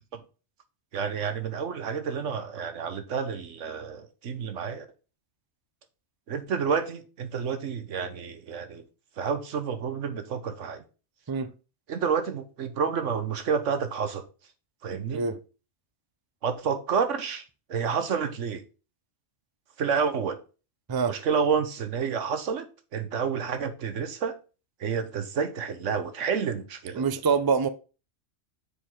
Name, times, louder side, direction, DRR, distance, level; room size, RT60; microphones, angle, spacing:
voice 1, 0.9-4.9 6.3-8.8 9.2-10.8 11.9-14.3 14.8-15.2 16.4-17.4 17.7-18.6 19.8-20.4 21.1-24.3 24.8-27.0, right 6 dB, 85° right, 1.3 m, -29 dB
voice 2, 27.0-27.7, right 5 dB, 35° right, 0.4 m, -25 dB
7.0 x 4.7 x 3.6 m
omnidirectional pair, 1.2 m